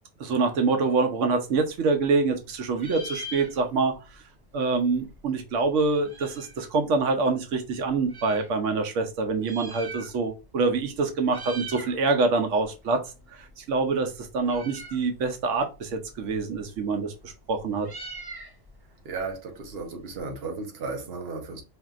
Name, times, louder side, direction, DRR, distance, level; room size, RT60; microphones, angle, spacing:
voice 1, 0.2-3.9 4.5-13.0 13.3-17.9, right 4 dB, 90° right, 1.0 m, -25 dB
Meow, 1.4-2.4 2.7-4.0 4.3-4.4 4.5-6.7 7.3-8.5 9.3-10.5 10.7-10.9 11.2-12.0 12.3-20.2, right 1 dB, 30° right, 0.4 m, -43 dB
voice 2, 19.0-21.6, right 4 dB, 55° right, 1.1 m, -34 dB
5.3 x 2.7 x 2.4 m
omnidirectional pair, 1.2 m